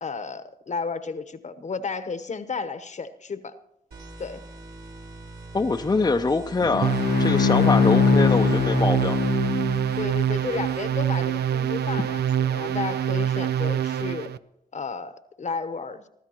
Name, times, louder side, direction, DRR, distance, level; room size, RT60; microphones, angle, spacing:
voice 1, 0.0-3.5 4.2-4.4 10.0-14.3 14.7-16.1, left 4 dB, 45° left, 12 dB, 1.0 m, -33 dB
sound 1, 3.9-13.6, right 1 dB, 70° right, 3.4 m, -45 dB
voice 2, 5.5-9.2, left 3 dB, 25° left, 4 dB, 0.6 m, -24 dB
Bowed string instrument, 6.6-10.1, left 8 dB, 80° left, 0.4 m, -22 dB
sound 2, 6.8-14.4, right 9 dB, 85° right, 0.4 m, -25 dB
23.0 x 13.0 x 2.9 m, 0.81 s
cardioid pair, 70°, 16 cm